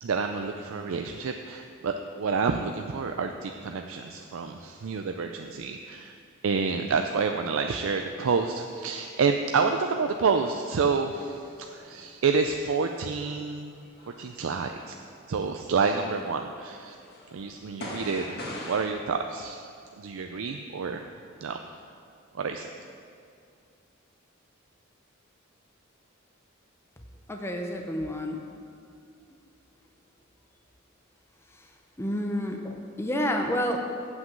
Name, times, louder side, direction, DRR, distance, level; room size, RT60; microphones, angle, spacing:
voice 1, 0.0-6.2 6.4-13.8 14.2-14.9 15.3-17.0 17.3-18.2 18.7-19.7 20.0-21.0 21.4-21.6 22.4-22.7, right 5 dB, 70° right, 5 dB, 0.4 m, -28 dB
sound 1, 11.1-12.0 12.5-16.2 16.6-18.9, left 1 dB, 50° left, 1.6 m, -43 dB
voice 2, 27.3-28.4 31.5-31.7 32.0-33.8, equal, 10° left, 2 dB, 0.6 m, -29 dB
7.4 x 6.0 x 7.8 m, 2.4 s
head